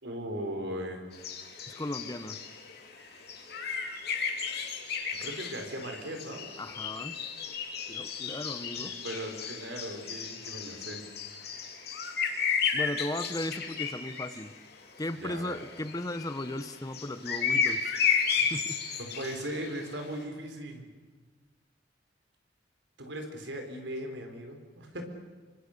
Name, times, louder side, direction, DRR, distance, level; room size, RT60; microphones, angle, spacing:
voice 1, 0.0-1.1 5.2-6.5 8.8-11.0 11.3-11.5 15.2-15.6 19.0-20.9 23.0-25.0, right 1 dB, 75° right, 4 dB, 4.9 m, -38 dB
sound 1, 1.1-14.4 15.1-19.8, left 6 dB, 60° left, 3.4 m, -33 dB
voice 2, 1.7-2.4 6.6-7.2 7.5-7.6 7.9-8.9 12.7-14.5 15.0-17.9 18.4-18.8, left 1 dB, 20° left, 11 dB, 1.0 m, -36 dB
28.0 x 24.5 x 6.8 m, 1.4 s
head